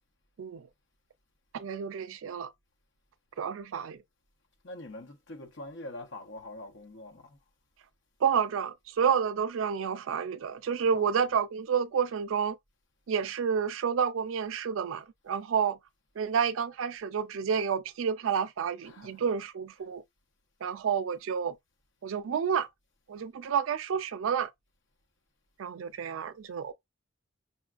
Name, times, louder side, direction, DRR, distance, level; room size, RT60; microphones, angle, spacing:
voice 1, 1.5-2.5 3.4-4.0 8.2-12.6 13.1-15.8 16.2-20.0 20.6-21.6 22.0-22.7 23.1-24.5 25.6-26.7, right 7 dB, 80° right, 0.4 m, -30 dB
voice 2, 4.6-7.4 10.9-11.2 18.8-19.3 19.8-19.9, left 1 dB, 70° left, 0.9 m, -44 dB
5.5 x 2.3 x 2.4 m
head